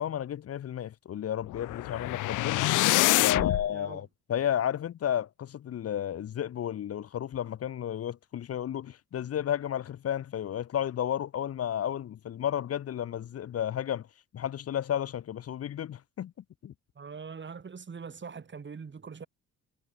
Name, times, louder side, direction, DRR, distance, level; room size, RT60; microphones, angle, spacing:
voice 1, 0.0-2.6 3.2-14.1 14.3-16.3 16.6-16.7, left 10 dB, 55° left, 0.9 m, -32 dB
sound 1, 1.5-3.7, left 18 dB, 85° left, 0.8 m, -25 dB
voice 2, 3.2-4.0 16.9-19.3, right 5 dB, 40° right, 6.3 m, -42 dB
cardioid pair, 90°, 30 cm